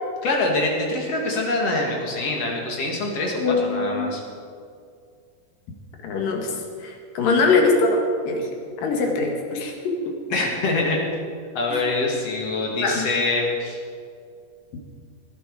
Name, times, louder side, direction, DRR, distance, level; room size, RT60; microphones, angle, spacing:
voice 1, 0.2-4.2 10.3-11.0 11.5-13.8, left 2 dB, 50° left, -1 dB, 3.1 m, -24 dB
voice 2, 3.4-4.1 6.0-6.6 6.8-8.5 8.8-9.7 10.1-10.2 11.7-11.8 12.8-13.1, left 3 dB, 70° left, 1 dB, 3.5 m, -22 dB
20.0 x 11.5 x 4.9 m, 2.2 s
omnidirectional pair, 4.1 m